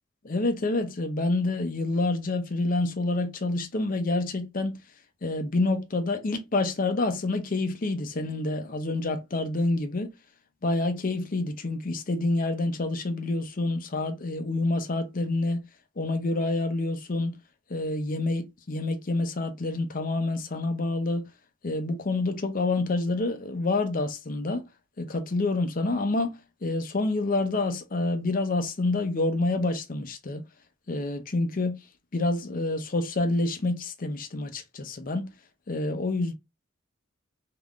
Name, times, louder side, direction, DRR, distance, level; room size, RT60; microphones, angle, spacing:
voice 1, 0.2-4.8 5.2-10.1 10.6-15.6 16.0-17.3 17.7-21.2 21.6-24.6 25.0-26.4 26.6-30.4 30.9-31.7 32.1-35.2 35.7-36.3, left 2 dB, 45° left, 0.6 m, -27 dB
3.5 x 2.9 x 2.4 m
head